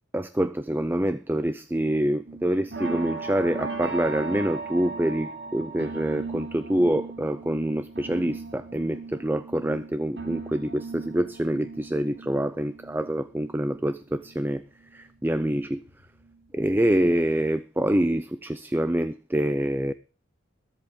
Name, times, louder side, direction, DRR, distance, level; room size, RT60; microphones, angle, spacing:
voice 1, 0.1-14.6 14.9-15.8 16.5-19.9, right 1 dB, 10° right, 0.5 m, -26 dB
sound 1, 2.3-14.4 14.8-16.4 16.7-17.1 17.4-17.5, right 4 dB, 60° right, 3.1 m, -38 dB
21.5 x 7.7 x 3.7 m
head